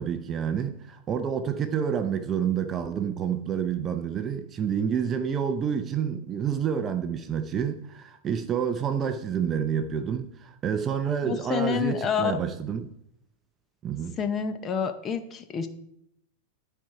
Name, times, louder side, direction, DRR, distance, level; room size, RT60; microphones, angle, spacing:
voice 1, 0.0-12.9 13.8-14.2, right 7 dB, 20° right, 0.5 m, -28 dB
voice 2, 11.2-12.4 14.2-15.7, left 7 dB, 20° left, 0.6 m, -28 dB
11.5 x 4.4 x 4.7 m
supercardioid pair, 165°, 0 cm